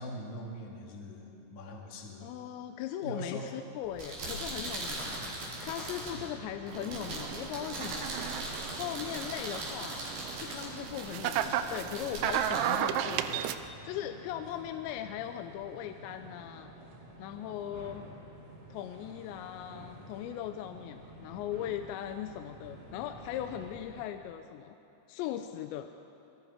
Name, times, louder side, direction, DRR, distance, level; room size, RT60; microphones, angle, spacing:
voice 1, 0.0-2.3 3.0-3.5 5.0-5.2 6.0-6.3, equal, 45° left, -1 dB, 3.3 m, -42 dB
voice 2, 2.2-8.1 8.7-10.0 10.4-13.4 13.8-16.7 17.2-18.1 18.7-24.8 25.1-25.9, left 11 dB, 85° left, 7 dB, 2.9 m, -39 dB
sound 1, 3.8-13.7, right 1 dB, 60° right, 6.4 m, -40 dB
sound 2, 5.0-24.0, right 1 dB, 25° right, 1.5 m, -51 dB
sound 3, 6.7-13.6, right 10 dB, 85° right, 3.1 m, -34 dB
27.0 x 23.0 x 5.0 m, 2.8 s
omnidirectional pair, 5.2 m